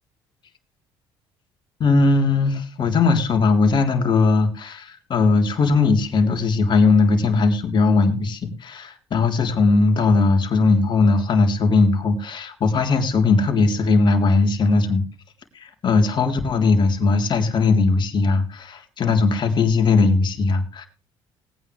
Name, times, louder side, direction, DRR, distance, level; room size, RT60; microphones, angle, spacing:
voice 1, 1.8-15.0 15.5-20.9, left 3 dB, 50° left, 4 dB, 3.5 m, -19 dB
19.5 x 9.4 x 3.3 m, 0.34 s
supercardioid pair, 80°, 10 cm